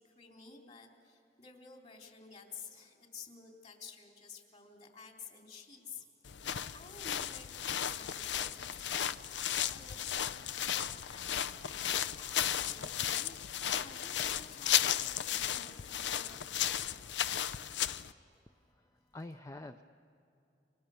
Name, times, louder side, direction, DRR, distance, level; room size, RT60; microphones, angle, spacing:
voice 1, 0.0-9.4 9.7-16.9, left 5 dB, 40° left, 2 dB, 3.3 m, -53 dB
sound 1, 6.2-18.1, left 10 dB, 85° left, 0.6 m, -34 dB
voice 2, 18.5-19.8, left 2 dB, 20° left, 8 dB, 0.5 m, -48 dB
30.0 x 26.0 x 7.0 m, 2.8 s
head